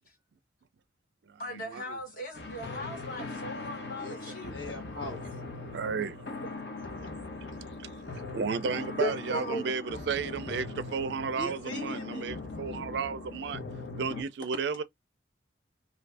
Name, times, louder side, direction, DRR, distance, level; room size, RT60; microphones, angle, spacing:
voice 1, 1.4-4.7 9.0-9.6 10.5-10.6, equal, 50° left, 1.4 m, -37 dB
sound 1, 2.3-14.2, left 3 dB, 70° left, 0.9 m, -40 dB
voice 2, 4.0-5.3 7.4-8.0 11.3-12.3, left 1 dB, 90° left, 1.4 m, -42 dB
voice 3, 5.7-6.3 7.0-7.1 8.3-13.6 14.0-14.8, right 5 dB, 70° right, 0.4 m, -33 dB
2.7 x 2.5 x 3.2 m
head